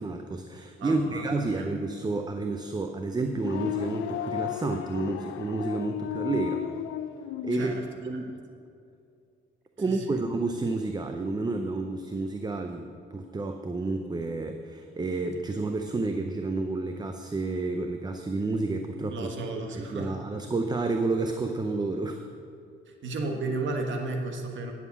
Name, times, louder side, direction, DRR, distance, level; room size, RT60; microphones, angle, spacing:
voice 1, 0.0-6.6 7.4-7.7 8.0-8.3 9.8-19.3 19.8-22.2, right 3 dB, 20° right, 5 dB, 0.6 m, -30 dB
voice 2, 0.8-1.7 7.5-7.8 8.1-8.2 9.8-10.2 19.1-20.2 22.9-24.7, right 2 dB, 70° right, 3 dB, 1.4 m, -34 dB
sound 1, 3.3-7.7, left 11 dB, 85° left, 0.4 m, -34 dB
9.5 x 7.3 x 7.0 m, 2.5 s
cardioid pair, 90°, 20 cm